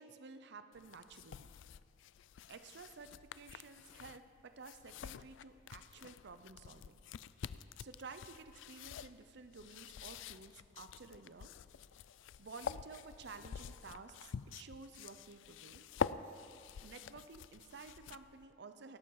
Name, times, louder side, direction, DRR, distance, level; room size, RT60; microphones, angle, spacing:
voice 1, 0.0-1.5 2.5-7.0 7.8-11.5 12.4-15.9 16.8-19.0, right 4 dB, 60° right, 10 dB, 0.6 m, -53 dB
Bookshelf find books, 0.7-18.5, left 7 dB, 75° left, 0.4 m, -47 dB
17.5 x 12.0 x 4.7 m, 2.4 s
head